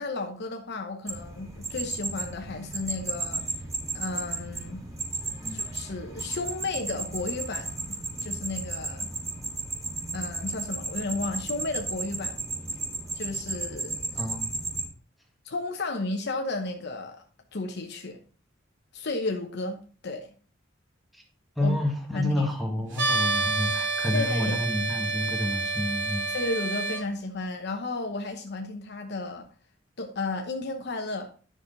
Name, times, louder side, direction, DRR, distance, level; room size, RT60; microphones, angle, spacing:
voice 1, 0.0-3.5 3.9-4.8 5.5-9.1 10.1-12.4 13.1-14.2 15.4-17.2 17.5-18.2 18.9-20.3 21.6-21.8 22.1-22.5 24.1-24.6 26.3-29.5 30.0-31.3, left 3 dB, 60° left, 1.0 m, -33 dB
sound 1, 1.1-14.9, right 2 dB, 15° right, 3.1 m, -34 dB
voice 2, 14.2-14.5 21.1-21.2 21.6-26.3, left 1 dB, ahead, 1.9 m, -29 dB
sound 2, 22.9-27.0, right 3 dB, 70° right, 2.5 m, -28 dB
10.5 x 6.2 x 4.0 m
head